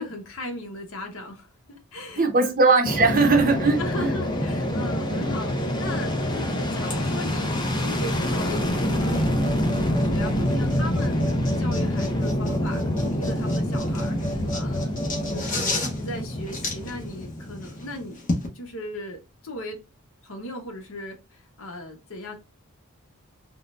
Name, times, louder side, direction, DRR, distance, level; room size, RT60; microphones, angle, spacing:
voice 1, 0.0-2.5 3.8-9.2 9.5-15.0 15.3-18.2 18.5-19.8 20.2-22.4, left 1 dB, 65° left, 0.9 m, -37 dB
voice 2, 2.2-4.1, right 3 dB, 40° right, 0.6 m, -20 dB
Fixed-wing aircraft airplane, 2.8-18.0, left 1 dB, 20° left, 0.5 m, -26 dB
sound 1, 6.8-18.5, left 2 dB, 35° left, 0.9 m, -35 dB
3.6 x 2.1 x 2.4 m
head